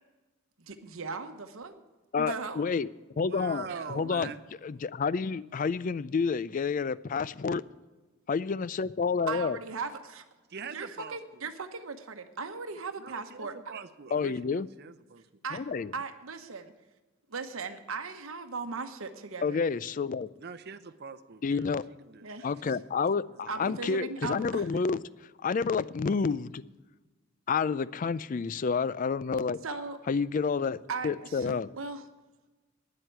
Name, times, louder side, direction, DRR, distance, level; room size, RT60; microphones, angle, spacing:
voice 1, 0.6-1.8 2.2-2.6 3.7-3.9 9.3-10.2 10.7-13.8 15.4-15.6 15.9-16.7 17.3-19.7 22.2-22.5 23.5-24.7 29.6-30.0 30.9-32.0, right 4 dB, 75° right, 6 dB, 1.0 m, -38 dB
voice 2, 2.1-2.9 3.2-4.3 4.6-7.6 8.3-9.6 14.1-14.7 15.5-15.9 19.4-20.3 21.4-21.8 22.4-25.0 25.4-26.6 27.5-29.6 30.1-30.8 31.0-31.7, left 5 dB, 40° left, 18 dB, 0.3 m, -29 dB
voice 3, 3.2-4.4 10.5-11.5 13.0-15.3 20.4-22.3 22.6-22.7 23.3-23.4, right 5 dB, 50° right, 11 dB, 0.7 m, -43 dB
9.7 x 7.9 x 9.0 m, 1.2 s
head